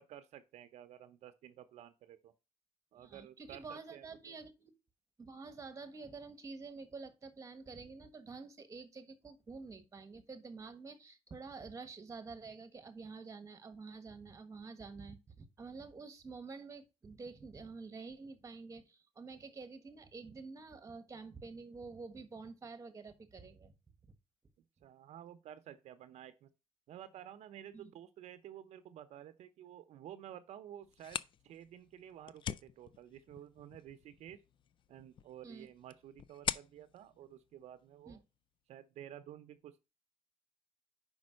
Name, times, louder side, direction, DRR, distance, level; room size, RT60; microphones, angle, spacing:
voice 1, 0.0-2.3 2.9-4.3 24.8-26.5 26.9-34.4 34.9-38.2 38.7-39.9, right 11 dB, 75° right, 0.7 m, -52 dB
voice 2, 2.9-4.7 5.2-23.7 24.0-24.1 27.7-27.9 35.4-35.7 38.1-38.2, right 4 dB, 30° right, 1.3 m, -49 dB
sound 1, 30.8-38.4, left 9 dB, 45° left, 0.4 m, -45 dB
5.2 x 5.2 x 6.3 m
cardioid pair, 105°, 11 cm